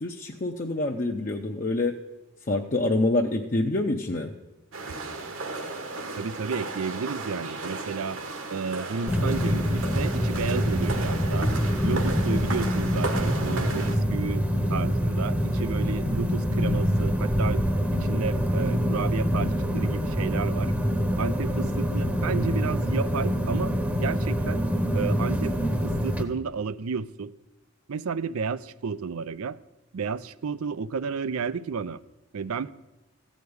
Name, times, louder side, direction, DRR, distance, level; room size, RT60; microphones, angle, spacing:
voice 1, 0.0-1.9 2.5-4.3, left 2 dB, 40° left, 1 dB, 0.7 m, -26 dB
sound 1, 4.7-14.0, right 3 dB, 65° right, 1.4 m, -35 dB
voice 2, 6.2-8.2 8.5-11.5 11.8-17.6 18.0-20.7 21.2-23.7 24.0-24.6 24.9-25.6 25.8-27.3 27.9-29.6 29.9-32.0 32.3-32.7, right 5 dB, 80° right, 16 dB, 0.5 m, -32 dB
sound 2, 9.1-26.2, equal, 5° right, 0.9 m, -25 dB
15.0 x 5.1 x 9.5 m, 1.0 s
head